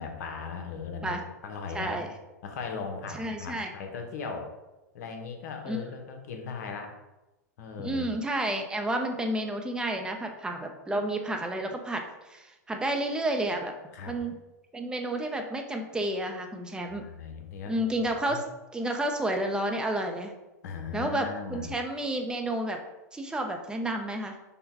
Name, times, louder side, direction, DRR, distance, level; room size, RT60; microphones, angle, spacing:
voice 1, 0.0-2.1 2.4-4.5 4.9-6.9 7.6-8.2 13.9-14.2 16.9-17.8 18.1-18.4 20.6-21.7, left 5 dB, 65° left, 4 dB, 0.8 m, -38 dB
voice 2, 1.7-2.1 3.1-3.7 5.7-5.8 7.8-13.7 14.1-14.4 14.7-17.0 17.7-18.4 18.7-20.3 20.9-22.8 23.1-24.4, right 1 dB, 10° right, 3 dB, 0.5 m, -31 dB
5.5 x 2.2 x 4.0 m, 1.0 s
hypercardioid pair, 110°, 10 cm